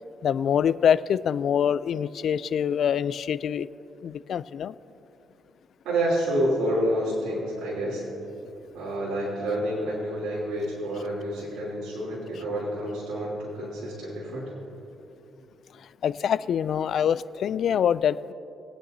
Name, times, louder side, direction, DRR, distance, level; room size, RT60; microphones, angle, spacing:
voice 1, 0.2-3.7 4.0-4.7 16.0-18.3, left 8 dB, 65° left, 16 dB, 0.3 m, -25 dB
voice 2, 5.8-8.0 8.7-14.5, right 1 dB, 85° right, -7 dB, 3.0 m, -28 dB
23.0 x 9.0 x 2.7 m, 2.9 s
cardioid pair, 90°, 0 cm